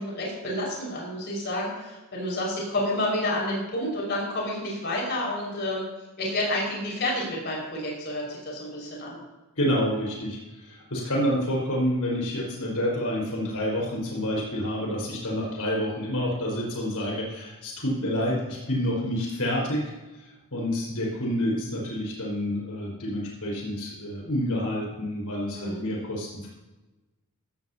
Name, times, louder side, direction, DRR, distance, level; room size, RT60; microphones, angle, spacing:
voice 1, 0.0-5.9 6.2-9.2 25.5-25.8, left 1 dB, 50° left, -3 dB, 5.4 m, -29 dB
voice 2, 9.6-19.9 20.2-26.5, equal, 85° left, -3 dB, 5.1 m, -28 dB
16.0 x 14.5 x 2.9 m, 1.1 s
head